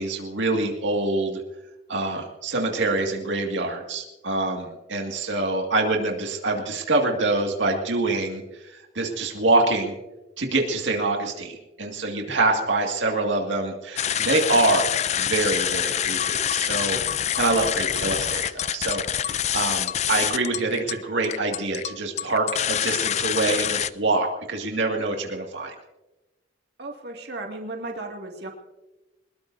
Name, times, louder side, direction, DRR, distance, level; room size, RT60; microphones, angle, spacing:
voice 1, 0.0-1.4 1.9-9.9 10.4-25.7, right 2 dB, 85° right, 2 dB, 2.0 m, -25 dB
sound 1, 14.0-23.9, left 10 dB, 35° left, 0.4 m, -26 dB
voice 2, 26.8-28.5, right 2 dB, 60° right, 1 dB, 2.1 m, -35 dB
23.0 x 20.5 x 2.7 m, 1.1 s
head